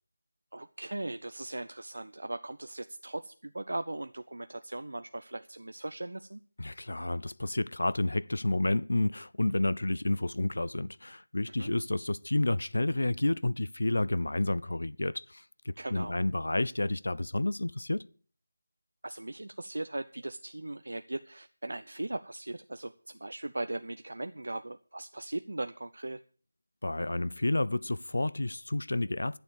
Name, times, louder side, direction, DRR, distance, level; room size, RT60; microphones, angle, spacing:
voice 1, 0.5-6.4 11.6-11.7 15.8-16.1 19.0-26.2, right 2 dB, 80° right, 0.7 m, -38 dB
voice 2, 6.6-18.0 26.8-29.4, left 2 dB, 80° left, 0.5 m, -30 dB
12.0 x 7.1 x 8.1 m
figure-of-eight pair, 175°, 0 cm